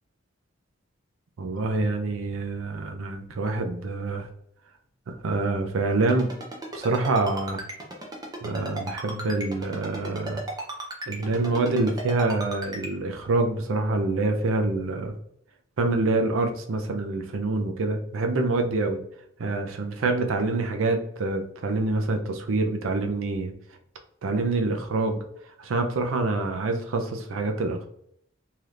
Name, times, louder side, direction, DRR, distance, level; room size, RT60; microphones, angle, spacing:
voice 1, 1.4-4.3 5.1-6.3 6.7-7.6 8.4-10.4 11.1-15.1 15.8-19.0 19.4-23.5 24.2-25.2 25.6-27.9, right 3 dB, 85° right, 5 dB, 0.5 m, -26 dB
Ringtone, 6.1-12.9, right 1 dB, 20° right, 0.6 m, -35 dB
3.3 x 2.8 x 2.4 m, 0.70 s
head